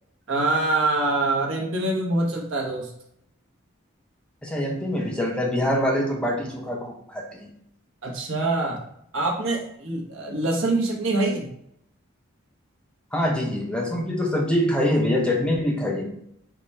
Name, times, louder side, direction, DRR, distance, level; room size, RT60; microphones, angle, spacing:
voice 1, 0.3-2.9 8.0-8.8 9.1-11.5, right 2 dB, 70° right, 0 dB, 1.0 m, -24 dB
voice 2, 4.4-7.5 13.1-16.1, left 1 dB, 5° left, 0 dB, 0.5 m, -24 dB
4.8 x 2.3 x 4.1 m, 0.74 s
head